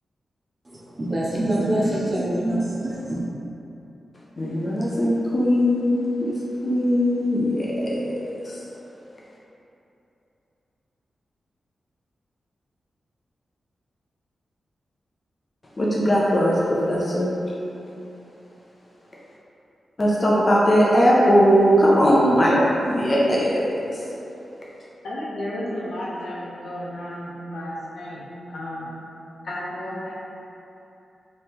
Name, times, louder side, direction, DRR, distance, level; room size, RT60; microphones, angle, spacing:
voice 1, 0.6-3.2, right 1 dB, 25° right, -6 dB, 0.6 m, -25 dB
voice 2, 4.4-8.2 8.4-8.6 15.8-17.4 20.0-24.0, equal, 25° left, -5 dB, 0.4 m, -20 dB
voice 3, 25.0-28.2 28.5-29.0 29.4-30.1, left 1 dB, 80° left, -6 dB, 0.7 m, -32 dB
2.9 x 2.8 x 3.5 m, 2.9 s
wide cardioid pair, 175°, 0 cm